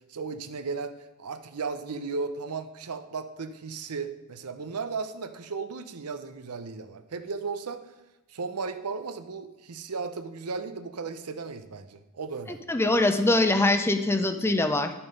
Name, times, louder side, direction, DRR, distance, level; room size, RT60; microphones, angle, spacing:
voice 1, 0.1-0.9 1.2-7.8 8.3-12.6, right 4 dB, 85° right, 10 dB, 0.7 m, -35 dB
voice 2, 12.5-14.9, left 2 dB, 10° left, 8 dB, 0.6 m, -23 dB
10.5 x 7.0 x 5.2 m, 0.99 s
head